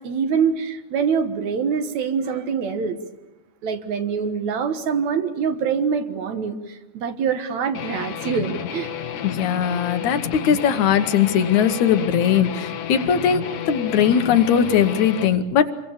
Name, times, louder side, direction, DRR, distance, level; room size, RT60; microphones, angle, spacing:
voice 1, 0.0-3.0 3.6-8.9, right 6 dB, 65° right, 8 dB, 2.6 m, -24 dB
Guitar, 7.7-15.4, left 8 dB, 90° left, 3.2 m, -31 dB
voice 2, 9.2-13.4 13.7-15.7, left 8 dB, 70° left, 9 dB, 2.4 m, -19 dB
27.0 x 23.0 x 7.2 m, 1.0 s
omnidirectional pair, 3.6 m